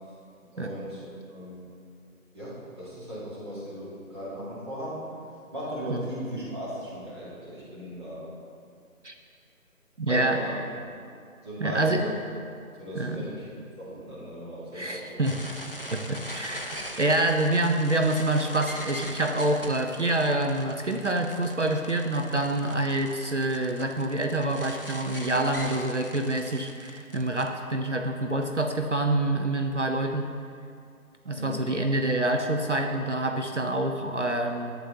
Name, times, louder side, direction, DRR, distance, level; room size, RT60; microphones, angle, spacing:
voice 1, 0.5-1.7 2.3-5.0 5.5-8.3 10.1-10.6 11.4-12.1 12.8-13.5 13.8-15.2 31.3-31.6, equal, 20° right, -10 dB, 1.5 m, -37 dB
voice 2, 10.0-10.4 11.6-12.0 13.0-13.2 14.8-15.4 15.9-30.3 31.3-34.7, right 2 dB, 55° right, 4 dB, 0.6 m, -26 dB
sound 1, 15.2-27.5, equal, 40° left, 0.5 m, -41 dB
11.5 x 8.1 x 2.8 m, 2.3 s
figure-of-eight pair, 165°, 44 cm